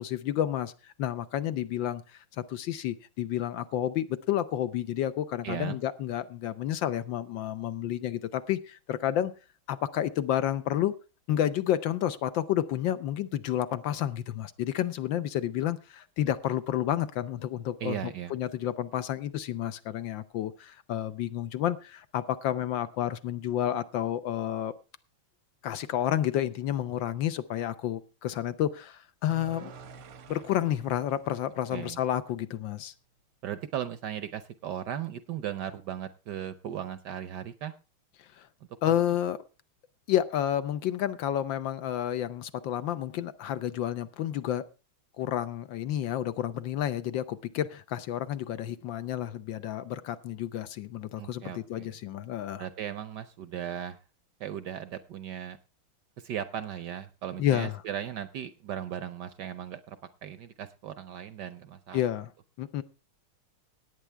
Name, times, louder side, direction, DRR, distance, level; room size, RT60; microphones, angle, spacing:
voice 1, 0.0-9.3 9.7-10.9 11.3-24.7 25.6-29.7 30.3-32.9 38.2-38.5 38.8-39.4 40.1-44.6 45.2-52.7 57.4-57.8 61.9-62.3 62.6-62.8, left 11 dB, 70° left, 1.4 m, -30 dB
voice 2, 5.4-5.8 17.8-18.3 31.7-32.0 33.4-37.7 38.8-38.9 51.2-51.9 52.6-54.0 54.4-55.6 56.2-62.1, right 10 dB, 65° right, 1.1 m, -37 dB
sound 1, 29.3-32.5, right 4 dB, 90° right, 2.1 m, -49 dB
17.5 x 9.1 x 3.4 m
omnidirectional pair, 2.3 m